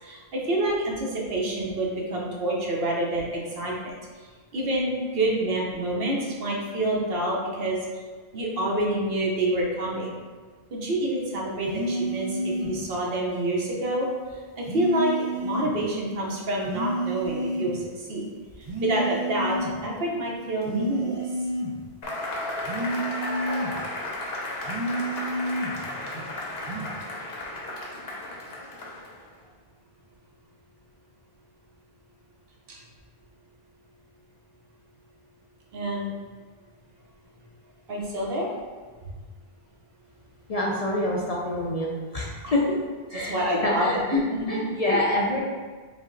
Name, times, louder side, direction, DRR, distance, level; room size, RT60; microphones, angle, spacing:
voice 1, 0.0-3.9 4.5-7.9 8.3-10.1 10.7-14.1 14.6-17.8 18.1-18.3 18.8-21.2 32.7-32.8 35.7-36.1 37.9-38.5 42.4-42.5 43.1-44.5 44.9-45.0, right 1 dB, 70° right, -2 dB, 1.0 m, -27 dB
sound 1, 11.6-12.8 14.6-15.8 16.6-17.8 18.6-19.8 20.6-21.8 22.6-23.8 24.6-25.8 26.6-26.9, right 1 dB, 40° right, 0.6 m, -30 dB
Cheering / Applause / Crowd, 22.0-29.3, left 1 dB, 75° left, 1.0 m, -34 dB
voice 2, 40.5-41.9 42.1-42.6 43.1-43.3 43.6-44.2 44.5-45.4, left 1 dB, 50° left, -4 dB, 0.5 m, -26 dB
5.1 x 2.1 x 3.7 m, 1.4 s
omnidirectional pair, 1.0 m